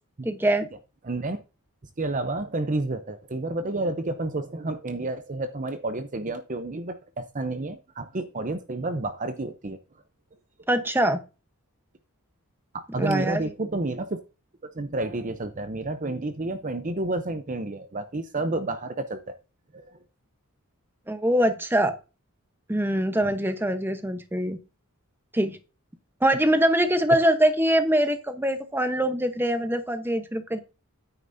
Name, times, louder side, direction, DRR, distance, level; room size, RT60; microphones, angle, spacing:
voice 1, 0.2-0.7 10.7-11.2 13.0-13.4 21.1-21.9 22.7-24.6 25.3-25.6 26.2-30.6, right 1 dB, 10° right, 9 dB, 0.9 m, -23 dB
voice 2, 1.0-1.4 2.0-9.8 12.9-14.2 14.6-19.4 19.7-19.9 23.2-23.3, right 2 dB, 35° right, 9 dB, 0.7 m, -30 dB
9.5 x 9.0 x 2.7 m, 0.30 s
head